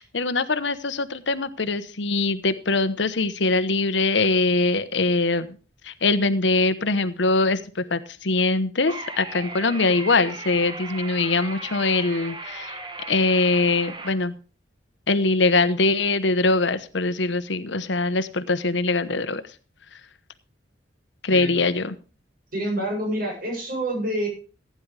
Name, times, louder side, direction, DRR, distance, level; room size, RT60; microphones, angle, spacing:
voice 1, 0.0-5.5 5.8-12.8 13.1-14.3 15.1-19.4 21.2-21.9, left 3 dB, 85° left, 12 dB, 1.0 m, -22 dB
sound 1, 8.9-14.1, right 3 dB, 25° right, 1.5 m, -37 dB
voice 2, 21.3-21.7 22.5-24.3, right 1 dB, 55° right, 0 dB, 7.7 m, -27 dB
16.0 x 9.7 x 3.3 m, 0.36 s
head